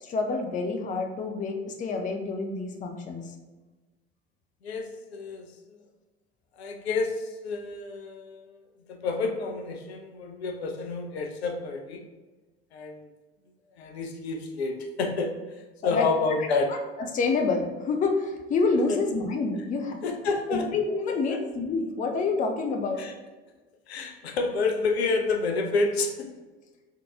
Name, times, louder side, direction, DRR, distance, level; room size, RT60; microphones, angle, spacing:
voice 1, 0.0-3.2 15.8-16.1 16.7-16.8 17.1-20.0 20.5-23.0, left 4 dB, 25° left, 4 dB, 0.5 m, -27 dB
voice 2, 4.6-5.5 6.6-8.6 8.9-12.0 12.7-13.1 13.8-15.3 15.8-16.7 18.9-19.0 20.0-20.7 21.3-21.4 23.0-23.1 23.9-26.3, left 3 dB, 70° left, 4 dB, 0.6 m, -29 dB
3.7 x 3.6 x 2.8 m, 1.2 s
figure-of-eight pair, 70°, 32 cm